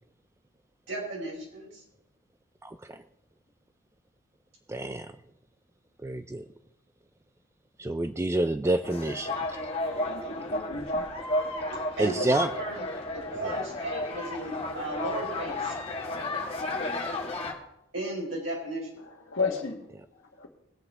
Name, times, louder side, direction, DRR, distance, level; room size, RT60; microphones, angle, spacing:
voice 1, 0.9-1.8 11.7-12.8 13.1-15.7 17.9-18.9, right 1 dB, 65° right, -3 dB, 5.1 m, -35 dB
voice 2, 2.6-3.0 4.7-5.2 6.0-6.5 7.8-9.6 12.0-12.5 13.4-13.6 20.0-20.1, right 1 dB, 15° right, 10 dB, 0.3 m, -28 dB
sound 1, 8.8-17.5, left 2 dB, 30° left, 1.8 m, -33 dB
voice 3, 9.9-11.0 19.3-19.8 20.4-20.5, left 4 dB, 65° left, -5 dB, 1.5 m, -33 dB
20.0 x 7.9 x 3.6 m, 0.81 s
head